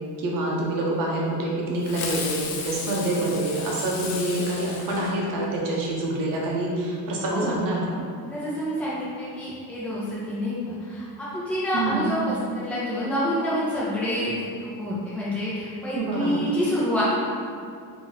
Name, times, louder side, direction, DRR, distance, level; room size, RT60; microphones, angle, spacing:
voice 1, 0.2-8.0 11.7-12.1 15.9-16.4, right 2 dB, 60° right, -3 dB, 0.9 m, -26 dB
Fireworks, 1.8-5.7, left 5 dB, 70° left, 0.7 m, -34 dB
voice 2, 7.2-7.6 8.3-17.0, equal, 5° left, -10 dB, 1.0 m, -28 dB
3.8 x 2.9 x 3.8 m, 2.3 s
cardioid pair, 135°, 38 cm